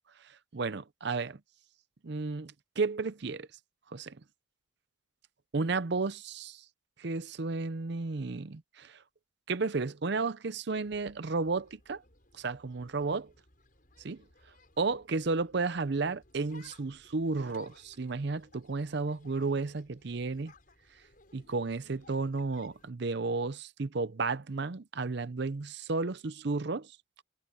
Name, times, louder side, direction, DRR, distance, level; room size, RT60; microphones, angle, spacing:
voice 1, 0.5-1.4 2.0-3.5 3.9-4.2 5.5-6.6 7.0-9.0 9.5-12.0 12.3-13.3 14.0-14.2 14.8-20.5 21.3-26.9, right 3 dB, 55° right, 0.6 m, -33 dB
sound 1, 10.7-22.9, left 3 dB, 45° left, 7.3 m, -61 dB
head